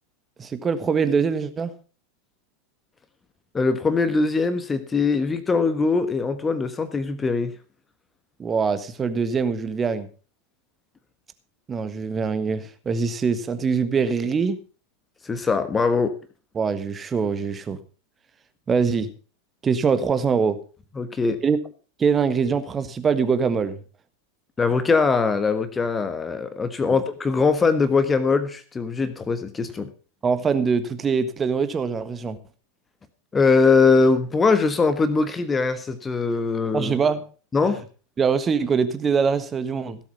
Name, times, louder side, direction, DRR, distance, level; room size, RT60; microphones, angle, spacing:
voice 1, 0.4-1.7 8.4-10.1 11.7-14.6 16.5-17.8 18.7-19.1 19.6-20.6 21.4-21.6 22.0-23.8 26.8-26.9 30.2-32.4 36.7-37.2 38.2-40.0, right 5 dB, 20° right, 12 dB, 1.5 m, -23 dB
voice 2, 3.5-7.5 15.2-16.2 21.0-21.4 24.6-29.9 33.3-36.9 37.5-37.8, left 4 dB, 15° left, 11 dB, 1.3 m, -21 dB
16.5 x 8.1 x 5.8 m, 0.37 s
figure-of-eight pair, 90°, 0 cm